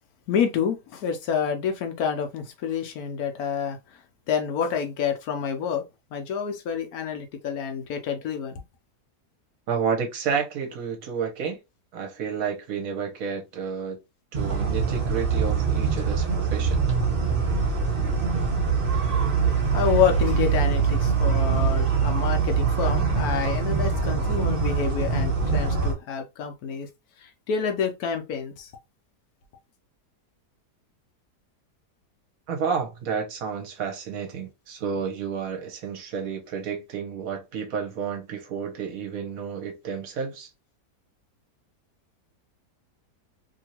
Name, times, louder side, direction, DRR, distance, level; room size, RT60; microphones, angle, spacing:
voice 1, 0.3-4.0 4.3-5.8 6.1-8.6 19.7-26.9 27.2-28.7, left 7 dB, 70° left, 1.0 m, -28 dB
voice 2, 9.7-11.6 11.9-14.0 14.3-16.8 32.5-40.5, right 6 dB, 65° right, 1.1 m, -30 dB
sound 1, 14.3-25.9, right 5 dB, 35° right, 1.3 m, -23 dB
2.9 x 2.7 x 2.8 m
omnidirectional pair, 1.8 m